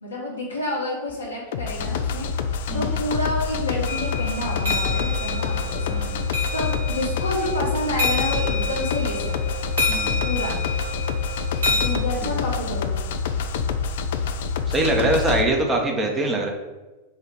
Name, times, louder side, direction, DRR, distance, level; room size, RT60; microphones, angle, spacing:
voice 1, 0.0-2.3 2.7-6.0 6.5-9.3 10.2-10.6 11.7-13.0, left 1 dB, 75° left, -4 dB, 1.3 m, -29 dB
sound 1, 1.5-15.4, left 5 dB, 55° left, 0.3 m, -26 dB
sound 2, 3.9-11.9, left 2 dB, 70° right, 1.2 m, -29 dB
voice 2, 5.9-6.3 9.9-10.2 12.2-12.4 14.7-16.5, right 2 dB, 15° right, 1 dB, 0.8 m, -23 dB
4.4 x 2.4 x 4.7 m, 1.2 s
figure-of-eight pair, 90°, 0 cm